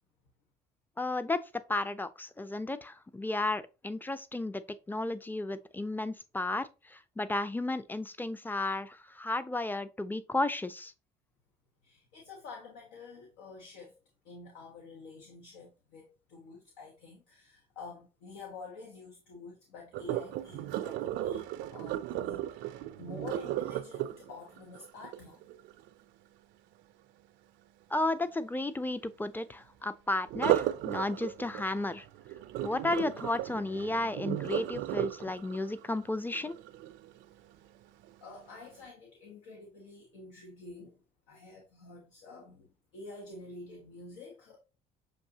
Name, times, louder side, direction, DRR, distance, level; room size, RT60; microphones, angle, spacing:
voice 1, 1.0-1.4 1.7-10.9 27.9-32.1 32.6-36.6, left 2 dB, 10° left, 0.5 m, -33 dB
voice 2, 11.8-14.0 14.2-25.4 38.2-41.0 41.3-44.6, left 3 dB, 80° left, 0.9 m, -49 dB
Sink (filling or washing), 19.9-25.9 30.3-37.3 37.8-38.1 38.6-38.7, right 13 dB, 65° right, 0.5 m, -35 dB
6.4 x 2.7 x 2.8 m
hypercardioid pair, 60°, 21 cm